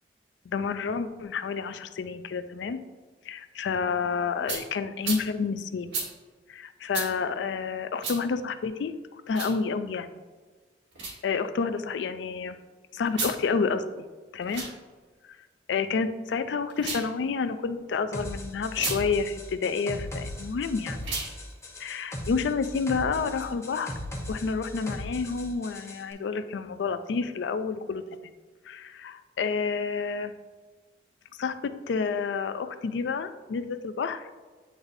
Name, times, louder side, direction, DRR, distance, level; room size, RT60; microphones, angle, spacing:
voice 1, 0.5-2.8 3.3-5.9 6.5-8.9 9.3-10.1 11.2-12.6 12.9-13.8 14.3-14.6 15.7-21.0 21.8-23.9 24.3-28.3 28.7-30.3 31.4-34.3, left 5 dB, 80° left, 10 dB, 0.4 m, -29 dB
sound 1, 4.5-4.6 5.0-5.2 5.9-6.1 6.9-7.1 8.0-8.2 9.3-9.6 10.9-11.2 13.1-13.4 14.4-14.7 16.7-17.1 18.7-19.0 21.0-21.3, right 4 dB, 85° right, 1.5 m, -32 dB
sound 2, 18.1-26.0, left 1 dB, 15° left, 0.9 m, -38 dB
9.2 x 4.0 x 2.6 m, 1.4 s
head